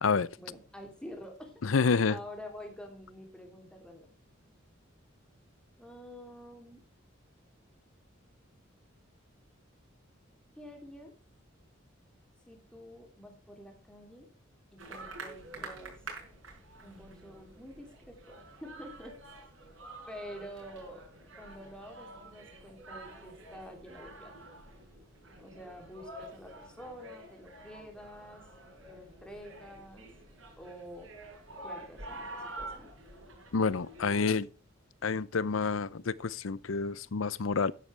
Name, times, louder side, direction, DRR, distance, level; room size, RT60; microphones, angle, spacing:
voice 1, 0.4-1.5 2.1-4.1 5.8-6.8 10.6-11.2 12.5-14.3 14.7-16.0 16.8-19.2 20.1-21.0 21.4-24.3 25.4-28.4 28.9-30.1 30.6-31.1 31.6-32.9, equal, 5° left, 3.2 m, -48 dB
voice 2, 1.6-2.2 33.5-34.5 35.0-37.7, left 5 dB, 85° left, 0.6 m, -28 dB
sound 1, 14.8-34.1, right 2 dB, 85° right, 5.0 m, -48 dB
12.5 x 9.9 x 3.4 m
head